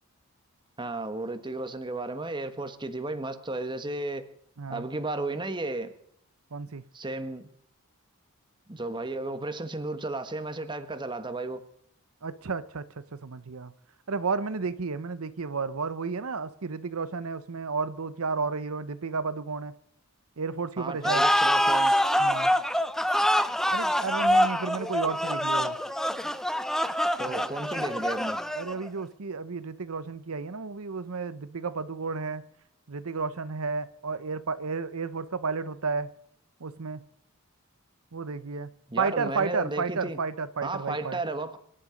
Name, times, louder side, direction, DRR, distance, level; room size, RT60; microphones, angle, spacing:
voice 1, 0.8-4.3 4.7-5.9 6.9-7.5 8.7-11.6 20.8-21.9 27.2-28.4 38.9-40.2 40.6-41.6, right 2 dB, 20° right, 1.4 m, -33 dB
voice 2, 6.5-6.8 12.2-13.7 14.1-19.7 20.4-21.2 22.2-22.5 23.7-25.8 27.3-27.4 28.5-32.4 32.9-36.1 36.6-37.0 38.1-38.7 39.0-41.2, right 4 dB, 85° right, 0.8 m, -32 dB
sound 1, 21.0-28.9, equal, ahead, 0.6 m, -25 dB
24.5 x 11.5 x 5.1 m
head